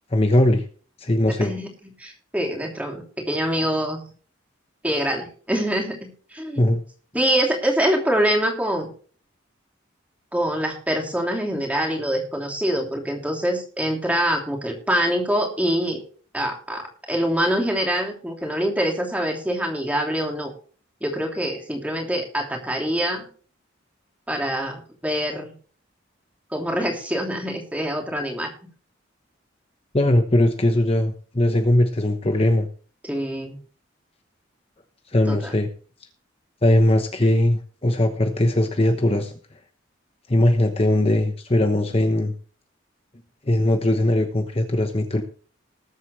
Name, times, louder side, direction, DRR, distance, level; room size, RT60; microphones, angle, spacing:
voice 1, 0.1-0.7 1.0-1.5 6.6-6.8 29.9-32.7 35.1-35.7 36.6-39.3 40.3-42.3 43.4-45.2, left 1 dB, 30° left, 6 dB, 1.0 m, -20 dB
voice 2, 2.0-4.0 4.8-6.6 7.1-8.9 10.3-16.0 16.3-20.5 21.0-23.3 24.3-25.5 26.5-28.5 33.0-33.6 35.3-35.5, equal, 5° right, 1 dB, 3.0 m, -25 dB
20.0 x 8.2 x 3.2 m, 0.42 s
head